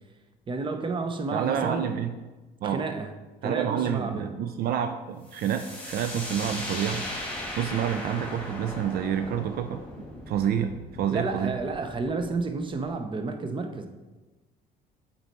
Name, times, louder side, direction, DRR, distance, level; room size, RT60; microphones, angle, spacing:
voice 1, 0.5-1.9 2.6-3.1 3.4-4.3 11.1-13.9, right 3 dB, 30° right, 7 dB, 0.7 m, -31 dB
voice 2, 1.3-2.1 2.6-2.9 3.4-7.0 7.6-9.8 10.3-11.5, right 9 dB, 65° right, 7 dB, 0.4 m, -28 dB
sound 1, 5.3-12.9, left 1 dB, 10° left, 1.6 m, -38 dB
7.7 x 4.1 x 4.2 m, 1.2 s
cardioid pair, 110°, 17 cm